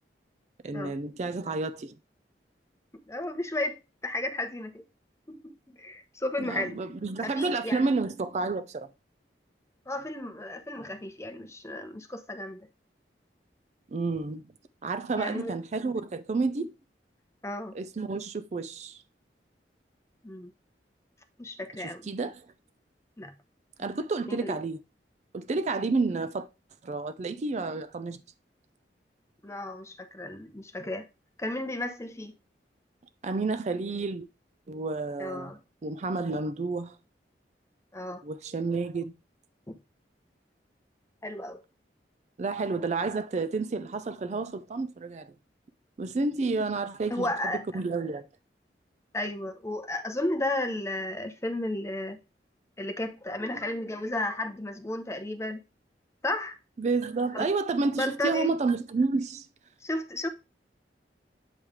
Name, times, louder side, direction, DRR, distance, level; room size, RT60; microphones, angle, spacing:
voice 1, 0.6-2.0 6.4-8.9 13.9-14.4 14.8-16.7 17.7-19.0 21.8-22.5 23.8-24.8 25.3-26.5 26.8-28.2 33.2-34.3 34.7-35.5 35.8-37.0 38.2-39.1 42.4-45.3 46.0-47.3 47.7-48.3 56.8-59.5, right 3 dB, 40° right, 0.4 m, -30 dB
voice 2, 3.1-4.8 5.3-6.8 7.2-7.9 9.9-12.7 15.2-15.6 17.4-17.7 20.2-20.5 21.4-22.1 23.2-23.3 24.3-24.6 29.4-31.1 31.4-32.3 35.2-35.6 37.9-38.2 39.7-39.8 41.2-41.6 47.1-47.6 49.1-52.2 52.8-55.6 56.2-56.6 57.3-57.5 58.0-58.5 59.8-60.3, left 1 dB, 15° left, 0.8 m, -33 dB
8.7 x 3.2 x 4.8 m
head